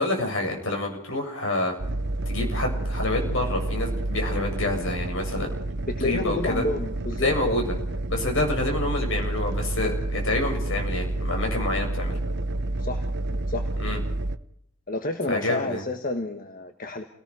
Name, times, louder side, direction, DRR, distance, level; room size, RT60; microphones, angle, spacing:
voice 1, 0.0-1.7 2.3-5.5 6.0-6.6 7.2-7.7 8.1-12.2 13.8-14.0 15.3-15.8, left 2 dB, 60° left, 3 dB, 7.1 m, -28 dB
sound 1, 1.8-14.4, right 2 dB, 50° right, 0.9 m, -29 dB
voice 2, 5.9-7.6 12.8-13.0 13.5-13.7 14.9-17.0, left 2 dB, 40° left, 6 dB, 1.5 m, -29 dB
29.5 x 18.5 x 4.9 m, 0.72 s
head